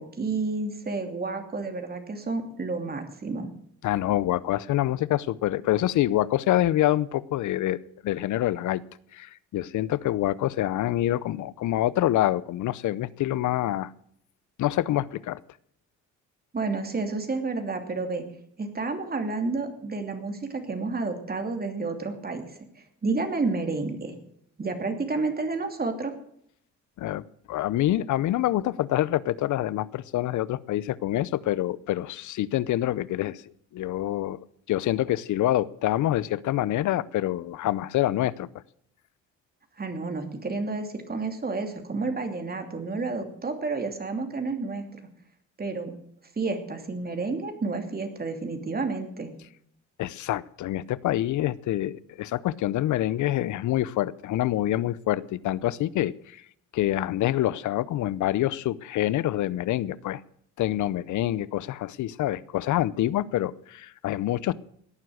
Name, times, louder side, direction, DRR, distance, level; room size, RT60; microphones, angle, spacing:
voice 1, 0.0-3.5 16.5-18.2 18.6-22.6 23.0-24.1 24.6-26.1 39.8-45.0 45.6-45.9 46.4-49.3, right 3 dB, 30° right, 6 dB, 2.9 m, -30 dB
voice 2, 3.8-8.8 9.1-13.9 14.6-15.4 27.0-33.4 33.7-34.4 34.7-38.5 50.0-56.4 56.7-60.2 60.6-64.5, left 14 dB, 75° left, 20 dB, 0.7 m, -26 dB
17.0 x 9.5 x 6.5 m, 0.68 s
cardioid pair, 90°, 30 cm